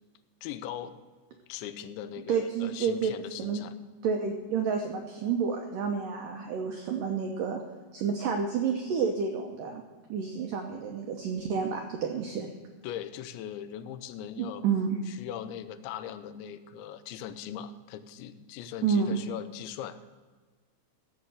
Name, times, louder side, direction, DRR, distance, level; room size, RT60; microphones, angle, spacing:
voice 1, 0.4-1.0 1.5-3.7 12.8-14.7 15.1-20.1, left 10 dB, 85° left, 12 dB, 3.0 m, -40 dB
voice 2, 2.3-3.1 3.4-3.6 4.0-7.6 7.9-9.8 10.1-12.5 14.4-15.0 18.8-19.2, right 6 dB, 85° right, 3 dB, 1.9 m, -29 dB
14.5 x 7.3 x 6.3 m, 1.4 s
omnidirectional pair, 5.2 m